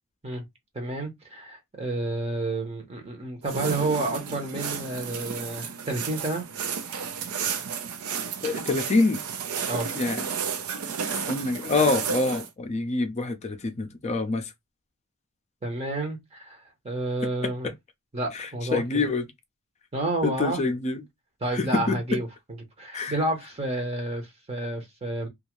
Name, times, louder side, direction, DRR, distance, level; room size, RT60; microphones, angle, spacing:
voice 1, 0.7-6.4 9.7-9.9 15.6-16.6 16.8-17.7 18.1-19.0 19.9-20.6 21.4-22.3 22.8-25.3, right 2 dB, 30° right, 0.8 m, -30 dB
sound 1, 3.4-12.5, right 6 dB, 80° right, 0.5 m, -32 dB
voice 2, 8.4-9.2 9.9-10.3 11.3-14.5 18.3-19.2 20.2-21.0 21.5-22.2 22.9-23.2, left 3 dB, 30° left, 0.5 m, -26 dB
2.6 x 2.4 x 3.0 m
head